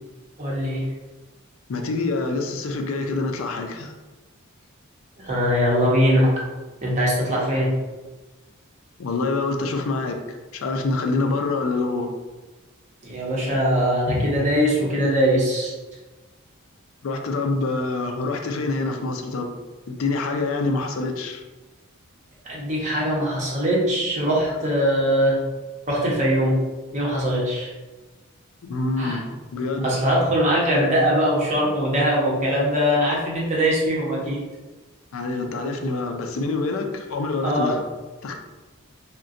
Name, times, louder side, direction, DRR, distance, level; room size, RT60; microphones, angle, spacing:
voice 1, 0.4-0.9 5.2-6.5 6.8-7.7 13.0-15.7 22.4-25.4 25.9-26.6 26.9-27.7 29.0-29.2 29.8-34.4 37.4-37.8, equal, 35° right, -4 dB, 0.8 m, -21 dB
voice 2, 1.7-3.9 9.0-12.1 17.0-19.5 19.9-21.4 28.6-29.9 35.1-37.8 38.2-38.3, left 3 dB, 70° left, 4 dB, 0.4 m, -26 dB
3.7 x 2.1 x 2.5 m, 1.2 s
head